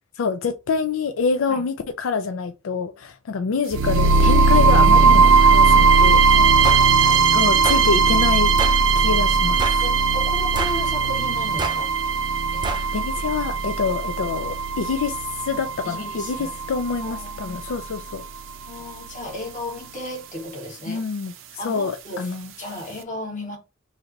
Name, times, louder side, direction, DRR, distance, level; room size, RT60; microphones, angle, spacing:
voice 1, 0.2-6.3 7.3-8.5 8.9-9.6 12.7-15.2 15.4-18.2 20.9-21.3 21.6-22.5, left 5 dB, 80° left, 0.4 m, -26 dB
sound 1, 3.7-17.7, right 4 dB, 75° right, 0.5 m, -18 dB
voice 2, 6.3-7.2 9.8-11.9 12.5-12.7 15.8-16.5 17.0-17.6 18.7-21.1 21.6-23.6, left 1 dB, 40° left, 1.3 m, -35 dB
sound 2, 6.6-6.9 7.6-7.9 8.6-8.8 9.6-9.9 10.6-10.8 11.6-11.8 12.6-12.9, right 3 dB, 20° right, 0.4 m, -28 dB
3.2 x 2.5 x 3.8 m
head